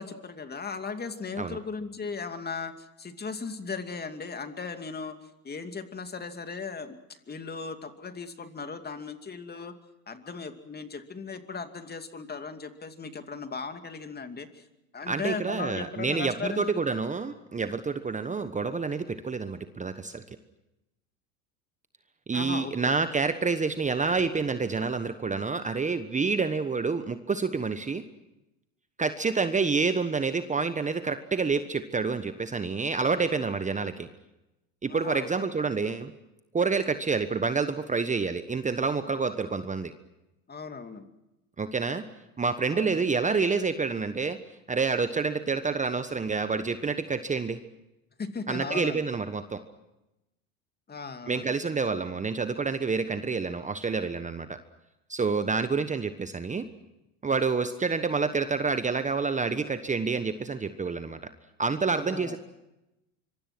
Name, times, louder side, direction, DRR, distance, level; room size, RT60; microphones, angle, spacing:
voice 1, 0.0-9.7 10.1-14.7 14.9-16.8 22.3-22.9 34.9-35.3 40.5-41.1 42.7-43.1 48.2-49.0 50.9-51.5 61.9-62.4, left 4 dB, 25° left, 8 dB, 2.5 m, -37 dB
voice 2, 15.1-20.2 22.3-28.0 29.0-34.1 34.8-36.1 36.5-39.9 41.6-42.1 42.4-44.4 44.7-47.6 48.5-49.6 51.3-54.6 55.1-56.7 57.2-61.2 61.6-62.4, right 4 dB, 20° right, 10 dB, 1.2 m, -28 dB
25.5 x 24.0 x 6.1 m, 0.94 s
hypercardioid pair, 80°, 41 cm